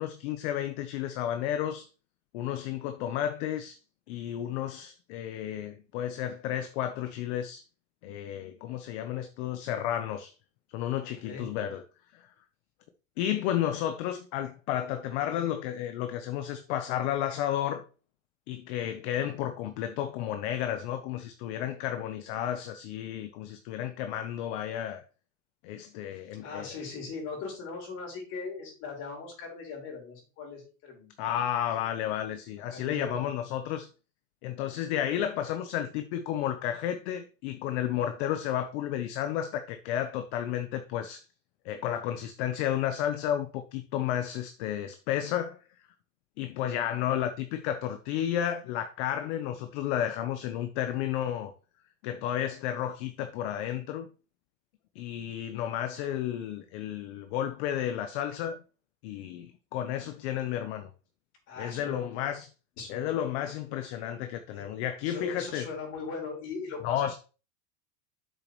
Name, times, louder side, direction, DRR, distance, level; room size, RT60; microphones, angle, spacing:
voice 1, 0.0-1.9 2.3-3.8 4.1-7.6 8.0-10.3 10.7-11.8 12.1-12.3 13.2-17.8 18.5-25.0 25.6-26.7 31.2-33.9 34.4-41.2 41.6-45.6 46.4-51.5 52.0-54.1 54.9-58.6 59.0-60.9 61.6-62.5 62.9-65.7 66.8-67.1, left 11 dB, 60° left, 1.0 m, -32 dB
voice 2, 11.0-11.5 26.1-31.1 32.7-33.3 61.5-62.0 62.8-63.1 64.5-64.7 65.0-67.2, left 4 dB, 40° left, 4.4 m, -40 dB
8.2 x 6.8 x 3.1 m
supercardioid pair, 155°, 38 cm